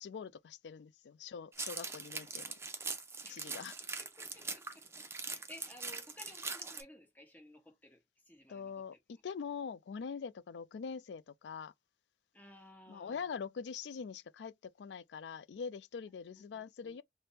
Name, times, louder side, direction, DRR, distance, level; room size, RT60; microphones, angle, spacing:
voice 1, 0.0-2.5 3.3-3.7 8.5-11.7 12.9-17.0, left 6 dB, 75° left, 0.4 m, -43 dB
sound 1, 1.5-6.8, right 4 dB, 15° right, 0.6 m, -42 dB
voice 2, 3.2-3.6 3.9-9.2 12.3-13.3 16.4-17.0, left 1 dB, 10° left, 1.1 m, -57 dB
3.4 x 2.1 x 4.1 m
head